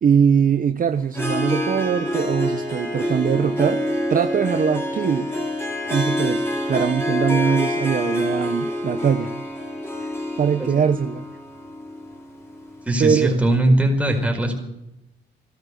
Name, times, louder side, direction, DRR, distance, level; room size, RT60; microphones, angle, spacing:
voice 1, 0.0-3.8 4.1-5.3 5.9-9.3 10.0-11.3 13.0-13.4, right 7 dB, 45° right, 8 dB, 0.9 m, -21 dB
Harp, 1.1-13.0, equal, 10° left, 4.7 m, -26 dB
voice 2, 12.9-14.5, right 1 dB, 5° right, 1 dB, 4.9 m, -20 dB
16.5 x 13.0 x 6.6 m, 0.86 s
cardioid pair, 90°, 20 cm